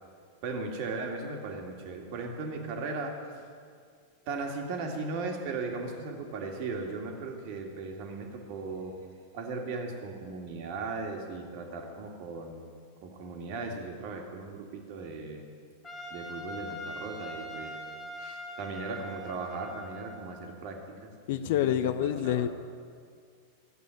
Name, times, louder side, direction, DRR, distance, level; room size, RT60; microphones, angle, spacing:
voice 1, 0.4-3.2 4.3-9.0 9.3-12.6 13.0-15.4 16.1-17.8 18.2-22.5, right 3 dB, 45° right, 2 dB, 2.1 m, -37 dB
Trumpet, 15.8-20.4, equal, 15° left, 2.4 m, -42 dB
voice 2, 21.3-22.5, left 11 dB, 50° left, 12 dB, 0.5 m, -27 dB
14.0 x 8.4 x 9.2 m, 2.2 s
figure-of-eight pair, 90°, 0 cm